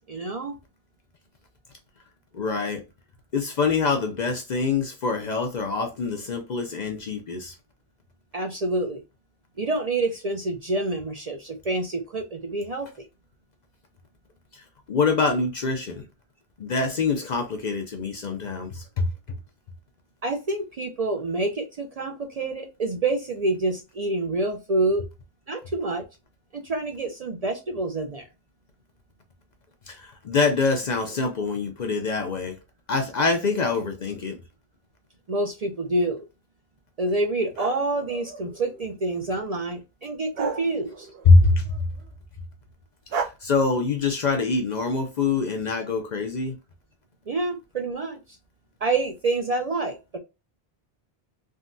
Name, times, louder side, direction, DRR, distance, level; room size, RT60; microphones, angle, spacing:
voice 1, 0.1-0.6 8.3-9.0 9.6-12.9 20.2-25.0 25.5-26.1 26.5-28.2 35.3-36.2 37.0-41.1 47.3-48.2 48.8-50.2, right 2 dB, 50° right, 0.5 m, -27 dB
voice 2, 2.3-2.8 3.3-7.5 14.5-16.1 16.6-19.1 29.9-32.6 32.9-34.4 41.3-41.7 43.1-46.6, left 4 dB, 55° left, 0.5 m, -24 dB
sound 1, 37.6-39.1 40.4-41.8 43.1-43.2, right 5 dB, 70° right, 0.9 m, -33 dB
3.5 x 2.1 x 2.5 m
omnidirectional pair, 1.1 m